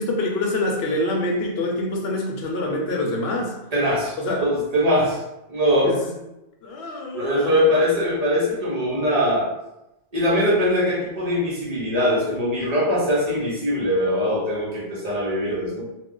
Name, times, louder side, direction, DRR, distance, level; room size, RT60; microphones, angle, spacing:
voice 1, 0.0-3.5 4.2-4.4 5.8-6.1 6.6-7.7, left 2 dB, 65° left, 0 dB, 0.9 m, -25 dB
voice 2, 3.7-5.2 5.5-5.9 7.1-9.4 10.1-15.8, equal, 35° right, -6 dB, 0.9 m, -22 dB
2.4 x 2.4 x 3.7 m, 0.94 s
omnidirectional pair, 1.2 m